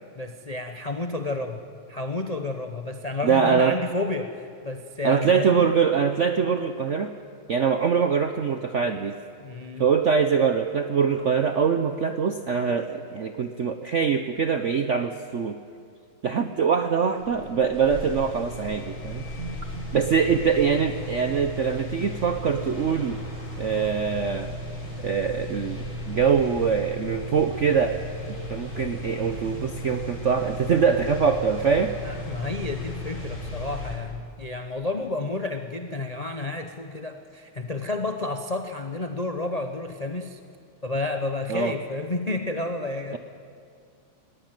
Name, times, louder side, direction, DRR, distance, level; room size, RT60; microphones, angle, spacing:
voice 1, 0.1-1.6 1.9-5.8 9.4-9.9 32.0-40.4 40.8-43.2, left 2 dB, 45° left, 5 dB, 0.4 m, -31 dB
voice 2, 3.2-3.8 5.0-7.1 7.5-9.2 9.8-15.6 16.2-23.2 23.6-24.5 25.0-28.0 28.5-32.0 41.5-41.7, right 6 dB, 65° right, 7 dB, 0.7 m, -23 dB
sound 1, 17.2-34.0, left 1 dB, 75° left, 4.9 m, -36 dB
20.0 x 17.0 x 9.1 m, 2.3 s
omnidirectional pair, 2.3 m